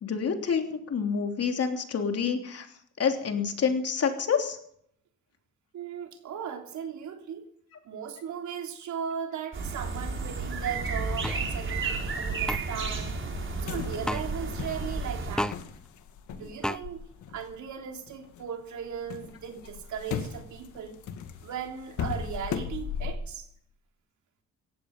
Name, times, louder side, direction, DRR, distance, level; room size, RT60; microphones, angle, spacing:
voice 1, 0.0-2.7 3.0-4.6, left 6 dB, 55° left, 4 dB, 3.2 m, -28 dB
voice 2, 5.7-7.5 7.9-13.1 13.6-15.6 16.3-17.0 17.3-21.0 21.4-23.5, right 7 dB, 70° right, 4 dB, 3.3 m, -37 dB
sound 1, 9.5-15.4, right 4 dB, 40° right, 4.2 m, -32 dB
sound 2, 11.2-11.4 12.5-12.6 14.1-14.2 15.4-15.6 16.6-16.8, equal, ahead, 0.6 m, -29 dB
sound 3, 13.3-18.4 18.8-23.2, left 7 dB, 75° left, 2.1 m, -38 dB
17.5 x 14.5 x 5.4 m, 0.67 s
cardioid pair, 90°, 30 cm